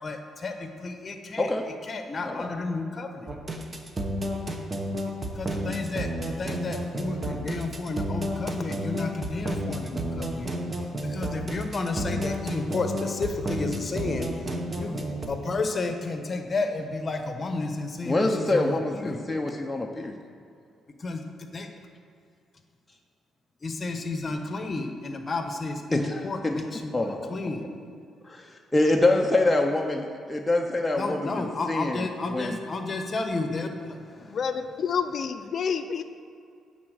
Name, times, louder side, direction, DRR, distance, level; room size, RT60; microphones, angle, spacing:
voice 1, 0.0-1.5 1.9-3.3 5.4-10.5 11.0-19.3 21.0-21.7 23.6-27.7 31.0-34.4, left 3 dB, 35° left, 5 dB, 1.0 m, -32 dB
sound 1, 3.3-15.3, right 1 dB, 25° right, 1.0 m, -31 dB
voice 2, 18.1-20.2 25.9-26.6 26.9-27.3 28.2-32.6, left 2 dB, 15° left, 1 dB, 0.6 m, -26 dB
voice 3, 34.3-36.0, left 6 dB, 55° left, 8 dB, 0.6 m, -28 dB
9.6 x 4.2 x 6.4 m, 2.5 s
cardioid pair, 90°, 0 cm